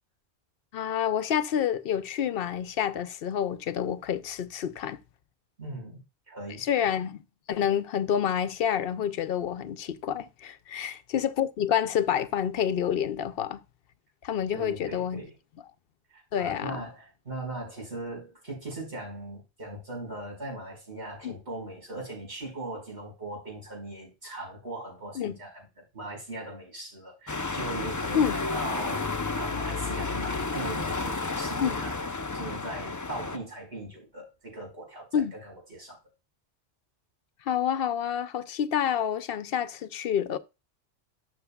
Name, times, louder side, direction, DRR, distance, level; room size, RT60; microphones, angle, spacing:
voice 1, 0.7-5.0 6.6-7.2 7.5-13.6 14.2-15.2 16.3-16.8 21.2-21.3 25.2-25.4 28.1-28.4 31.6-31.8 35.1-35.3 37.5-40.4, left 9 dB, 65° left, 0.7 m, -28 dB
voice 2, 5.6-6.0 6.3-6.9 10.7-11.0 14.5-15.3 16.1-25.7 25.9-32.0 32.3-36.0, right 1 dB, 70° right, 5.1 m, -39 dB
sound 1, 27.3-33.4, left 3 dB, 25° left, 0.4 m, -31 dB
12.5 x 6.3 x 2.3 m
omnidirectional pair, 1.2 m